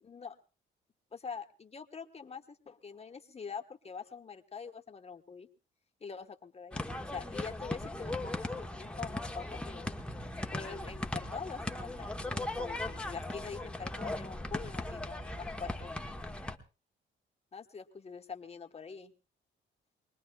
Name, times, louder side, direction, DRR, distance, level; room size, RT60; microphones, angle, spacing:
voice 1, 0.0-0.4 1.1-5.5 6.0-10.0 10.5-15.9 17.5-19.1, left 5 dB, 30° left, 6 dB, 1.2 m, -45 dB
sound 1, 6.7-16.6, left 1 dB, 5° left, 1.0 m, -38 dB
23.5 x 20.0 x 2.3 m, 0.33 s
cardioid pair, 90°, 20 cm